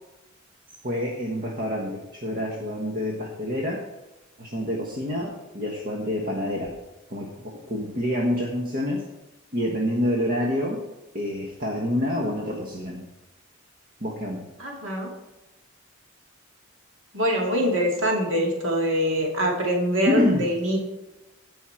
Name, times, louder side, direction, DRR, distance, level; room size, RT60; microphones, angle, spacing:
voice 1, 0.8-3.8 4.4-6.7 7.1-9.0 9.5-10.8 11.1-13.0 14.0-14.5 20.1-20.5, left 1 dB, 45° right, -1 dB, 1.4 m, -27 dB
voice 2, 14.6-15.1 17.1-20.8, equal, 70° right, -1 dB, 2.1 m, -24 dB
16.5 x 5.6 x 4.5 m, 1.0 s
head